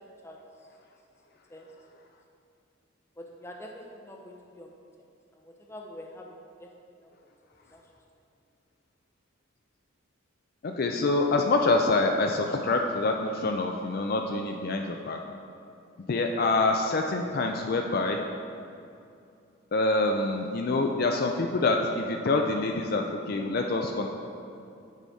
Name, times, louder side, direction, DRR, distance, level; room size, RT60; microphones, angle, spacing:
voice 1, 3.2-4.7 5.3-6.7 7.0-7.1 7.7-7.8 12.5-12.7, left 1 dB, 10° left, 0 dB, 0.6 m, -45 dB
voice 2, 10.6-15.2 16.1-18.2 19.7-24.1, left 2 dB, 45° left, 3 dB, 0.4 m, -26 dB
9.1 x 4.8 x 4.1 m, 2.6 s
head